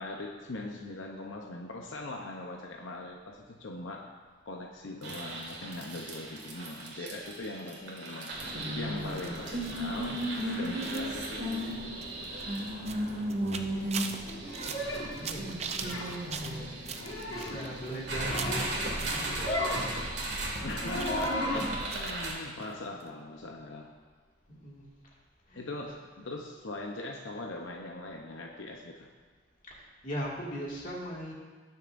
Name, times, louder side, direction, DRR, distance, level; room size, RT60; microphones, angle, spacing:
voice 1, 0.0-4.1 4.5-8.3 8.7-10.2 10.5-12.0 20.6-23.9 25.5-29.1, left 2 dB, 80° left, 0 dB, 0.8 m, -41 dB
sound 1, 5.0-22.3, right 1 dB, 60° right, 2.0 m, -36 dB
sound 2, 9.1-19.9 20.2-22.3 22.6-22.7 23.0-23.1, right 6 dB, 35° right, 0.5 m, -42 dB
voice 2, 12.8-13.7 14.1-14.3 14.6-15.6 16.3-16.7 17.2-20.2 24.5-24.9 25.5-25.9 29.7-31.3, equal, 40° left, -4 dB, 2.1 m, -41 dB
sound 3, 14.5-15.1 15.8-16.1 16.9-17.6 18.0-18.7 19.2-19.9 20.6-21.7, left 1 dB, 65° left, 2.2 m, -33 dB
19.0 x 6.7 x 2.6 m, 1.5 s
head